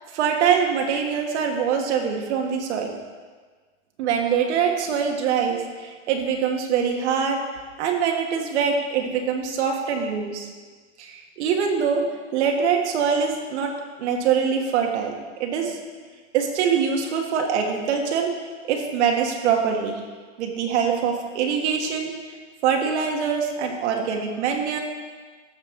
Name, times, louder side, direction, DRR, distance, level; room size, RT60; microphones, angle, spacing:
voice 1, 0.0-2.9 4.0-7.4 7.8-10.5 11.0-12.1 12.3-13.7 14.0-15.8 16.3-18.4 18.7-20.0 20.4-22.1 22.6-24.8, right 7 dB, 65° right, 2 dB, 1.6 m, -24 dB
14.0 x 6.4 x 3.8 m, 1.5 s
hypercardioid pair, 135°, 37 cm